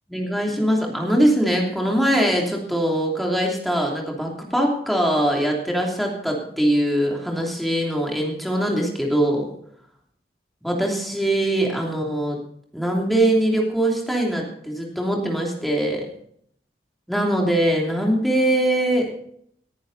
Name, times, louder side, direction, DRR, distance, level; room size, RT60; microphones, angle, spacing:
voice 1, 0.1-9.5 10.6-12.4 12.7-16.0 17.1-19.1, right 1 dB, ahead, -1 dB, 2.9 m, -22 dB
19.5 x 10.5 x 4.1 m, 0.67 s
head